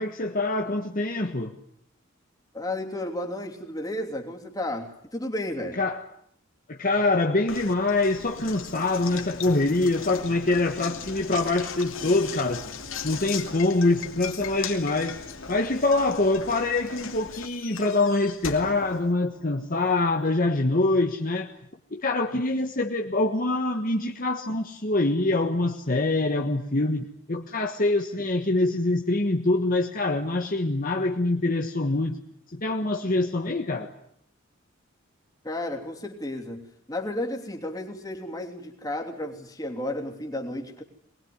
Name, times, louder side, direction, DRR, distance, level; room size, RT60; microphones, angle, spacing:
voice 1, 0.0-1.5 5.8-6.0 6.7-12.7 13.0-15.2 15.5-21.5 21.9-32.2 32.5-33.9, left 2 dB, 45° left, 1.4 m, -25 dB
voice 2, 2.5-5.8 35.4-40.8, left 1 dB, 20° left, 3.2 m, -33 dB
Knock, 7.5-19.6, left 6 dB, 80° left, 2.8 m, -38 dB
22.5 x 20.5 x 9.5 m
head